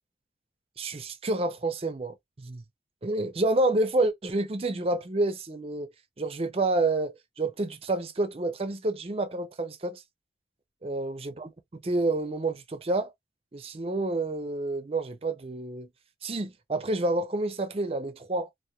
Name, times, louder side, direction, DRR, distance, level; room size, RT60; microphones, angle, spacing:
voice 1, 0.8-2.6 3.0-5.9 6.2-10.0 10.8-13.1 13.5-15.9 16.2-18.5, right 2 dB, 30° right, 0.5 m, -29 dB
2.8 x 2.1 x 2.2 m
head